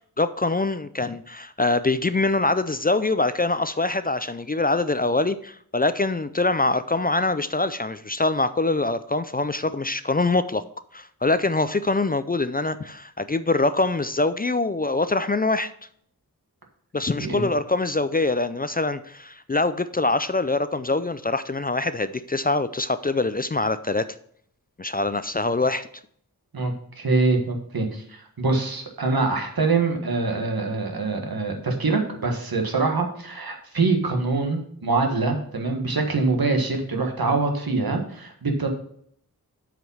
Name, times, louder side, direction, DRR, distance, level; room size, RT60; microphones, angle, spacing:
voice 1, 0.0-10.6 10.9-15.7 16.9-24.0 24.8-25.9, left 2 dB, 25° left, 13 dB, 0.4 m, -24 dB
voice 2, 26.5-28.0 28.4-38.7, right 3 dB, 80° right, 3 dB, 1.6 m, -24 dB
7.8 x 5.1 x 5.5 m, 0.64 s
wide cardioid pair, 70°, 36 cm